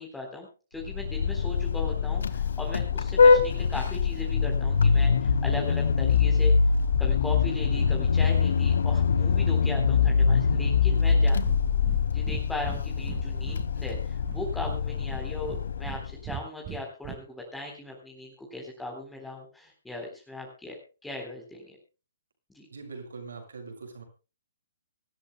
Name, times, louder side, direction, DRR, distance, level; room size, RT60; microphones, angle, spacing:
voice 1, 0.0-6.5 7.0-11.4 12.1-21.8 22.5-22.7, left 2 dB, 5° left, 1 dB, 3.9 m, -38 dB
Vehicle horn car horn honking, 0.8-16.2, left 5 dB, 65° left, 1.7 m, -24 dB
Breathing, 11.0-11.2 11.4-11.6 11.8-12.0 12.2-13.6 13.9-14.8 15.1-16.0 16.2-17.2, right 11 dB, 30° right, 1.9 m, -38 dB
voice 2, 22.7-24.0, right 4 dB, 70° right, 4 dB, 7.6 m, -42 dB
25.0 x 14.0 x 2.2 m, 0.35 s
figure-of-eight pair, 125°, 0 cm